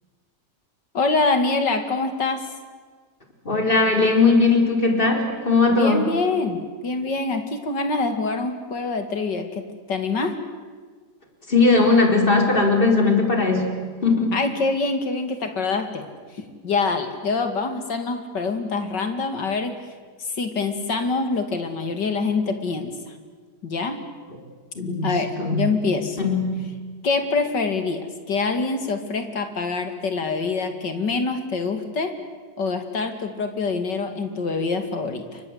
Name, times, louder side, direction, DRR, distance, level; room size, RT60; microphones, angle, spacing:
voice 1, 0.9-2.4 5.7-9.6 9.9-10.3 14.3-16.1 16.6-19.7 20.3-22.9 23.6-24.0 25.0-26.2 27.0-32.1 32.6-35.4, left 3 dB, 85° left, 7 dB, 3.1 m, -25 dB
voice 2, 3.4-6.1 11.5-14.4 24.8-25.1 25.4-25.7 26.2-26.6, left 3 dB, 30° left, 4 dB, 4.1 m, -19 dB
29.0 x 23.5 x 8.1 m, 1.5 s
omnidirectional pair, 1.8 m